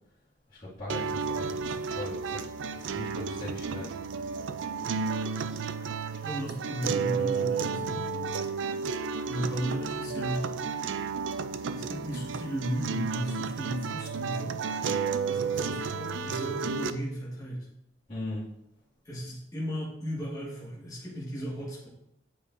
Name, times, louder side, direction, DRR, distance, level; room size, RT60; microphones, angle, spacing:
voice 1, 0.5-4.0 15.5-15.7 18.1-18.5, left 1 dB, 40° left, -13 dB, 2.2 m, -39 dB
sound 1, 0.9-16.9, right 5 dB, 80° right, 0.4 m, -32 dB
voice 2, 6.2-8.1 9.3-10.5 11.7-14.6 15.3-17.7 19.0-21.9, equal, 20° left, -6 dB, 1.4 m, -35 dB
8.6 x 5.2 x 2.6 m, 0.80 s
head